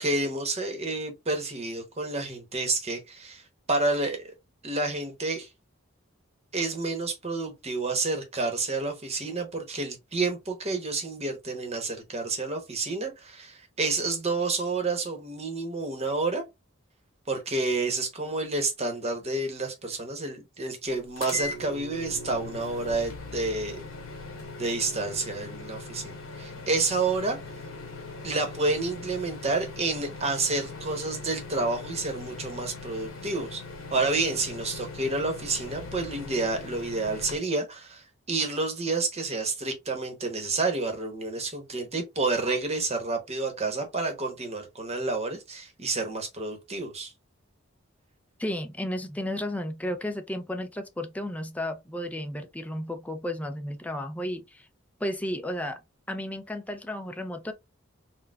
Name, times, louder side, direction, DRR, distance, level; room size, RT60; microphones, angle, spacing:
voice 1, 0.0-3.4 3.7-4.3 4.6-5.5 6.5-16.4 17.3-23.8 24.6-27.4 28.2-33.6 33.9-47.1, right 3 dB, 30° right, 0.9 m, -29 dB
sound 1, 21.2-37.4, left 3 dB, 70° left, 0.9 m, -40 dB
voice 2, 48.4-54.7 55.0-55.8 56.1-57.5, left 1 dB, 5° left, 0.4 m, -33 dB
4.1 x 2.1 x 2.3 m
head